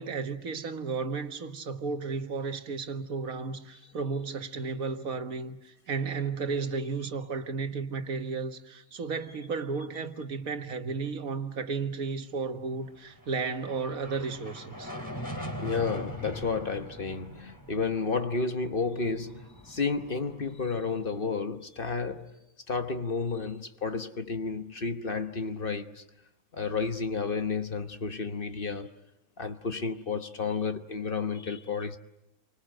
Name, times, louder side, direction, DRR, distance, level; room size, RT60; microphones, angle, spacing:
voice 1, 0.0-14.9, right 4 dB, 80° right, 1.8 m, -33 dB
sound 1, 12.9-21.4, equal, 15° left, 4.2 m, -42 dB
voice 2, 15.6-22.4 22.7-26.0 26.5-28.9 29.4-32.0, left 4 dB, 40° left, 1.3 m, -31 dB
29.0 x 25.0 x 7.8 m
omnidirectional pair, 1.5 m